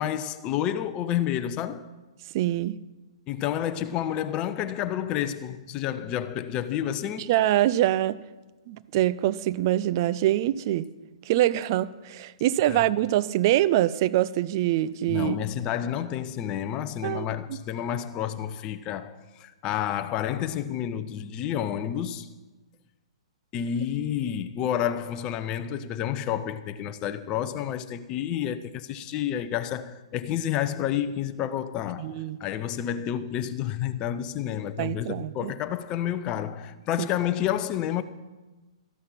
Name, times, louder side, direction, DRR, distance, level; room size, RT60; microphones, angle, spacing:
voice 1, 0.0-1.9 3.3-7.3 12.7-12.8 15.0-22.3 23.5-38.0, left 10 dB, 25° left, 0.8 m, -30 dB
voice 2, 2.3-2.8 7.3-8.2 8.7-10.9 11.3-15.4 17.0-17.4 32.0-32.4 34.8-35.5 37.0-37.1, right 14 dB, 40° right, 0.5 m, -24 dB
13.5 x 11.5 x 5.8 m
figure-of-eight pair, 120°, 3 cm